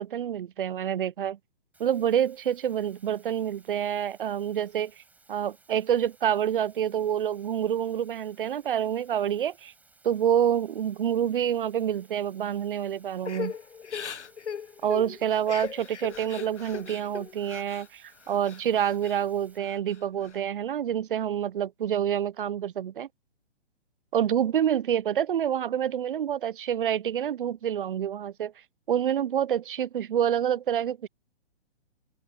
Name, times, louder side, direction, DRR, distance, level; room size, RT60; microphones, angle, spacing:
voice 1, 0.0-1.4 1.8-4.9 5.3-9.7 10.0-13.5 14.8-23.1 24.1-28.5 28.9-31.1, right 9 dB, 50° right, 0.6 m, -27 dB
sound 1, 1.7-19.6, right 3 dB, 5° right, 6.2 m, -61 dB
Crying sobbing / Breathing, 13.2-17.9 18.2-19.2 19.6-20.4, left 7 dB, 80° left, 0.9 m, -38 dB
open air
figure-of-eight pair, 135°, 34 cm